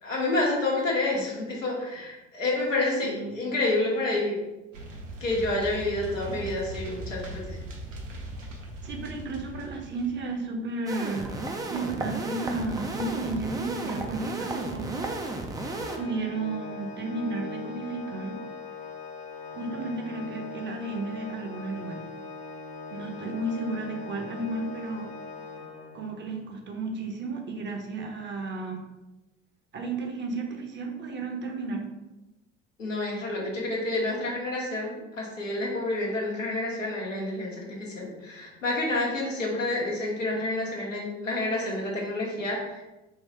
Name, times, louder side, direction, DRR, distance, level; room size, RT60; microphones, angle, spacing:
voice 1, 0.0-4.4 5.2-7.6 32.8-42.8, left 2 dB, 90° left, -3 dB, 1.0 m, -29 dB
voice 2, 3.0-3.4 8.8-11.4 11.7-15.1 16.0-18.4 19.5-22.1 22.9-25.1 25.9-28.8 29.7-31.9, right 3 dB, 30° right, 2 dB, 0.8 m, -33 dB
sound 1, 4.7-10.2, right 1 dB, 80° right, 0.8 m, -39 dB
sound 2, 10.9-16.0, right 2 dB, 10° right, 0.4 m, -33 dB
Organ, 15.6-26.3, left 4 dB, 55° left, 0.7 m, -41 dB
3.9 x 2.3 x 4.4 m, 1.1 s
figure-of-eight pair, 70°, 37 cm